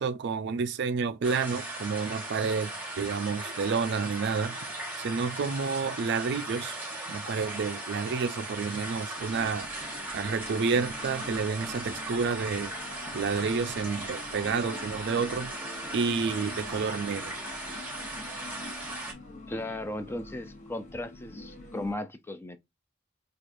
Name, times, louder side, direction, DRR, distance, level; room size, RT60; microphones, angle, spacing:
voice 1, 0.0-6.8 7.1-9.7 10.1-12.7 13.1-15.5 15.9-17.3, right 5 dB, 60° right, 0.4 m, -30 dB
sound 1, 1.2-19.1, right 1 dB, 10° right, 1.0 m, -38 dB
sound 2, 9.2-22.0, left 2 dB, 40° left, 0.9 m, -46 dB
sound 3, 11.6-19.3, left 3 dB, 70° left, 0.8 m, -52 dB
voice 2, 19.5-22.6, left 1 dB, 10° left, 0.4 m, -36 dB
4.6 x 2.4 x 2.5 m
head